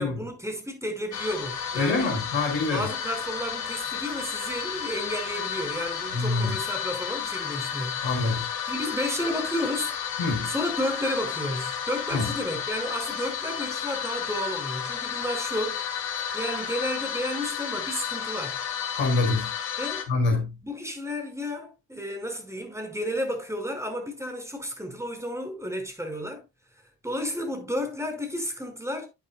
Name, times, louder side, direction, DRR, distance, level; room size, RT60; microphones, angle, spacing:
voice 1, 0.0-2.1 2.7-10.0 10.4-15.8 16.3-18.6 19.8-20.1 20.6-26.4 27.0-29.1, equal, 5° right, 5.0 m, -32 dB
sound 1, 1.1-20.0, left 8 dB, 90° left, 1.4 m, -32 dB
voice 2, 1.8-2.9 6.1-6.5 8.0-8.4 10.2-10.5 12.1-12.3 18.9-19.5 20.1-20.5, left 3 dB, 70° left, 5.5 m, -25 dB
12.5 x 8.2 x 2.3 m
hypercardioid pair, 50°, 47 cm